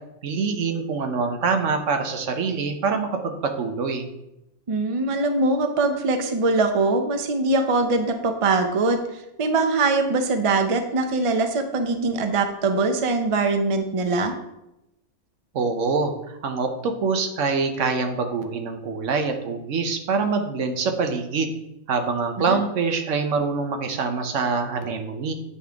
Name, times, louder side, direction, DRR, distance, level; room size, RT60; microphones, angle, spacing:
voice 1, 0.2-4.1 15.5-21.5 21.9-25.3, right 4 dB, 80° right, 6 dB, 1.2 m, -25 dB
voice 2, 4.7-9.0 9.4-14.3 22.5-22.6, right 3 dB, 35° right, 6 dB, 0.6 m, -22 dB
8.6 x 5.5 x 3.5 m, 0.89 s
omnidirectional pair, 1.3 m